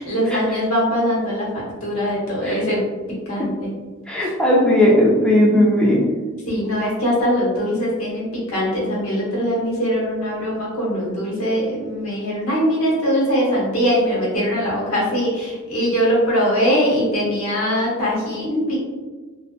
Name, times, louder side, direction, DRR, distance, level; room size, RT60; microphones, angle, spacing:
voice 1, 0.0-2.8 3.3-3.7 6.5-18.8, equal, 70° left, -5 dB, 0.9 m, -21 dB
voice 2, 4.1-6.0, left 1 dB, 5° left, -4 dB, 0.4 m, -16 dB
2.6 x 2.2 x 2.3 m, 1.3 s
head